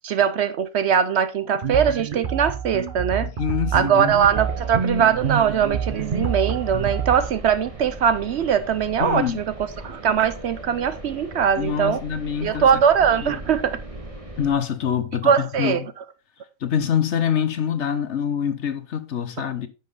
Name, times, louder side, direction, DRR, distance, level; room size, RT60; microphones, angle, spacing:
voice 1, 0.0-3.3 3.7-9.4 9.8-12.0 12.4-13.8 15.2-15.8, right 7 dB, 65° right, 0.8 m, -21 dB
sound 1, 1.6-7.3, right 7 dB, 40° right, 1.1 m, -27 dB
voice 2, 3.2-4.1 9.0-9.4 11.6-12.8 13.2-13.3 14.4-15.7 16.6-19.7, left 8 dB, 60° left, 1.2 m, -25 dB
sound 2, 4.1-14.6, right 1 dB, 25° right, 1.6 m, -38 dB
10.5 x 5.4 x 3.9 m
omnidirectional pair, 1.4 m